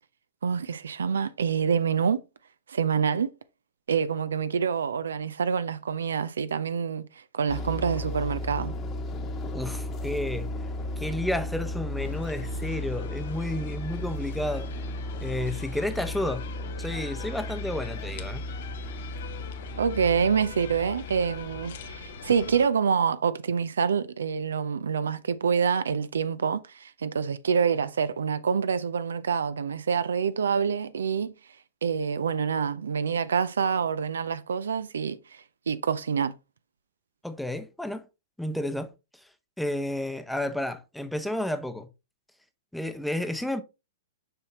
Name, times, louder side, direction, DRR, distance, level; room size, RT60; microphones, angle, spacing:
voice 1, 0.4-2.2 2.7-3.3 3.9-8.8 19.8-31.3 31.8-36.4, right 6 dB, 70° right, 0.4 m, -26 dB
sound 1, 7.5-22.6, left 1 dB, 25° left, 1.2 m, -35 dB
voice 2, 9.5-10.5 11.0-14.7 15.2-16.5 16.8-18.5 37.2-38.0 38.4-39.3 39.6-41.9 42.7-43.6, left 1 dB, ahead, 0.8 m, -31 dB
sound 2, 12.0-22.7, left 7 dB, 60° left, 0.8 m, -43 dB
6.7 x 5.6 x 2.9 m
figure-of-eight pair, 105°, 0 cm